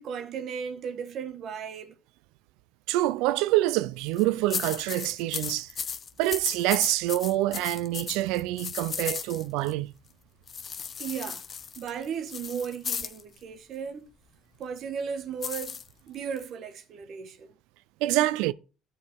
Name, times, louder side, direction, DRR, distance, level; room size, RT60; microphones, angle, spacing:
voice 1, 0.0-2.0 11.0-11.5 11.8-14.1 14.6-15.8 16.1-17.5, right 7 dB, 60° right, 1.8 m, -35 dB
voice 2, 2.9-5.7 6.2-9.9 18.0-18.5, right 16 dB, 80° right, 0.5 m, -26 dB
sound 1, 4.0-4.2 4.5-9.7 10.5-13.2 15.4-16.4, left 6 dB, 45° left, 1.0 m, -35 dB
12.0 x 4.9 x 4.6 m
supercardioid pair, 70°, 0 cm